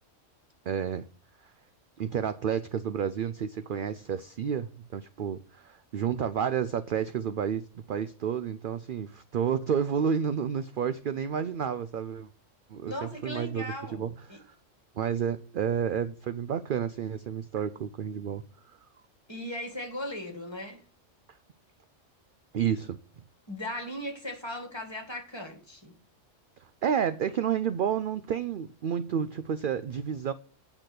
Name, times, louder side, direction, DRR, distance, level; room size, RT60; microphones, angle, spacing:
voice 1, 0.7-1.1 1.4-1.5 2.0-12.3 12.7-14.5 15.0-18.4 22.5-23.0 26.8-30.3, right 8 dB, 60° right, 0.6 m, -30 dB
voice 2, 12.9-14.4 19.3-20.8 23.5-26.0, left 1 dB, 20° left, 1.9 m, -38 dB
8.9 x 6.0 x 6.4 m
omnidirectional pair, 1.3 m